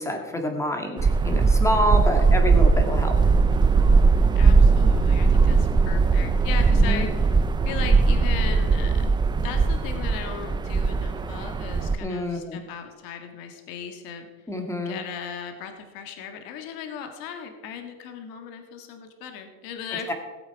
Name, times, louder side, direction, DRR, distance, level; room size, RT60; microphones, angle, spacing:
voice 1, 0.0-3.2 6.7-7.1 12.0-12.6 14.5-15.0 20.1-20.2, equal, 5° left, 4 dB, 1.8 m, -27 dB
sound 1, 1.0-12.0, right 4 dB, 10° right, 0.4 m, -19 dB
voice 2, 4.3-7.4 7.7-9.1 9.4-14.3 14.9-20.1, left 7 dB, 60° left, 5 dB, 1.8 m, -37 dB
17.5 x 7.9 x 4.7 m, 1.4 s
supercardioid pair, 130°, 38 cm